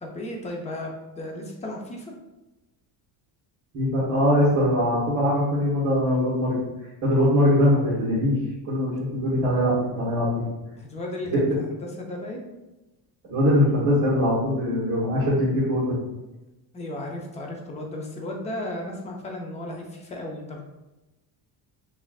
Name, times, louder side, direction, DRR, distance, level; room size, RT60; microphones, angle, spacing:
voice 1, 0.0-2.1 10.8-12.5 16.7-20.6, left 1 dB, 15° left, 1 dB, 0.4 m, -35 dB
voice 2, 3.7-6.6 7.0-8.4 8.6-10.4 11.3-11.4 13.2-15.9, left 1 dB, 40° right, -8 dB, 1.3 m, -22 dB
5.3 x 2.5 x 2.3 m, 1.0 s
cardioid pair, 160°, 45 cm